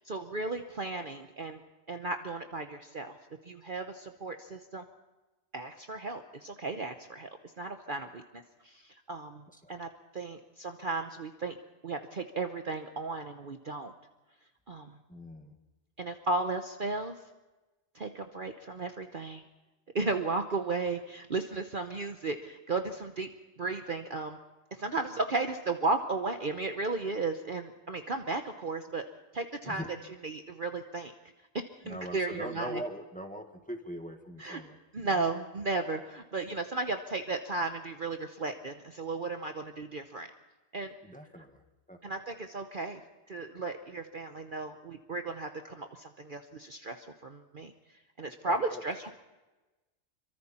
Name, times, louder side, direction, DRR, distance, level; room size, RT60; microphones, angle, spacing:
voice 1, 0.1-1.6 1.9-3.2 3.4-4.8 5.5-7.3 7.6-8.2 8.6-8.7 9.1-9.4 9.7-11.5 11.8-13.9 14.7-14.9 16.0-17.1 17.9-19.4 19.9-23.3 23.6-24.4 24.7-29.0 29.3-29.8 30.2-31.1 31.5-32.8 34.4-34.6 34.9-40.3 40.7-40.9 42.0-43.0 43.3-47.7 48.2-49.1, right 3 dB, 45° right, 6 dB, 1.1 m, -34 dB
voice 2, 9.5-9.8 15.1-15.6 29.6-29.9 31.8-34.8 35.0-35.2 41.0-41.6 41.9-42.0 48.4-48.8, equal, 5° left, 4 dB, 1.7 m, -41 dB
27.0 x 24.0 x 4.4 m, 1.1 s
omnidirectional pair, 1.4 m